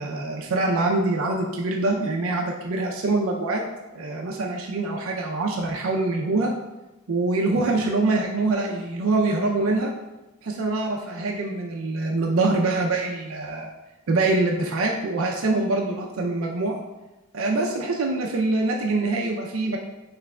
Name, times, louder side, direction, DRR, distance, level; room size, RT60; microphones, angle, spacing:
voice 1, 0.0-3.6 3.9-6.5 7.1-9.9 10.4-13.7 14.1-16.7 17.3-19.8, right 2 dB, 70° right, 0 dB, 0.5 m, -24 dB
5.9 x 3.2 x 2.2 m, 1.0 s
head